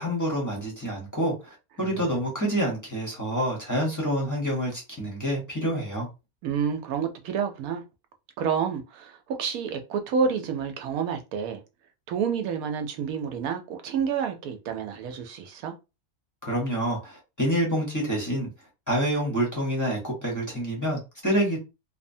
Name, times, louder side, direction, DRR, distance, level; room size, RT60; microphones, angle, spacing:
voice 1, 0.0-6.1 16.4-18.5 18.9-21.6, equal, 15° left, 0.8 m, -27 dB
voice 2, 6.4-7.8 8.4-11.6 12.1-15.7, right 6 dB, 80° right, 1.1 m, -29 dB
2.9 x 2.0 x 2.6 m
omnidirectional pair, 1.5 m